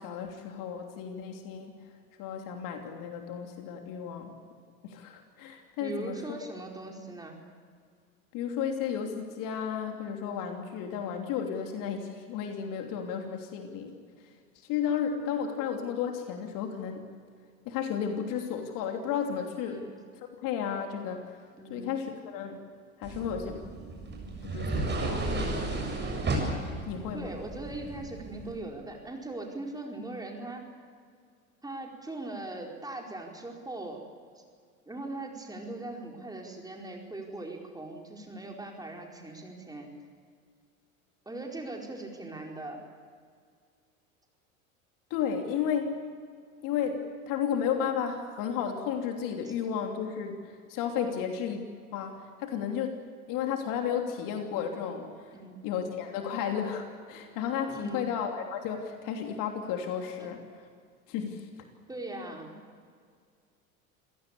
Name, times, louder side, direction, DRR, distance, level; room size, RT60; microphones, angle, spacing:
voice 1, 0.0-1.9 2.2-4.3 4.8-6.4 8.3-13.9 14.2-14.3 14.6-17.1 17.6-19.8 20.2-21.4 21.7-22.6 23.0-23.6 24.4-25.5 26.8-27.4 45.1-46.0 46.6-51.6 51.9-53.0 53.3-55.4 55.6-60.4 61.1-61.5 62.2-62.3, left 8 dB, 50° left, 4 dB, 3.1 m, -33 dB
voice 2, 5.8-7.4 19.7-20.0 21.6-21.9 27.1-30.6 31.6-34.0 34.9-39.9 41.2-42.8 49.4-49.5 51.0-51.3 55.3-55.6 57.7-58.0 60.2-60.3 61.9-62.6, right 2 dB, 10° right, 1 dB, 4.7 m, -40 dB
sound 1, 23.0-28.5, right 2 dB, 25° right, 7.4 m, -33 dB
27.5 x 17.5 x 8.5 m, 2.1 s
figure-of-eight pair, 80°, 43 cm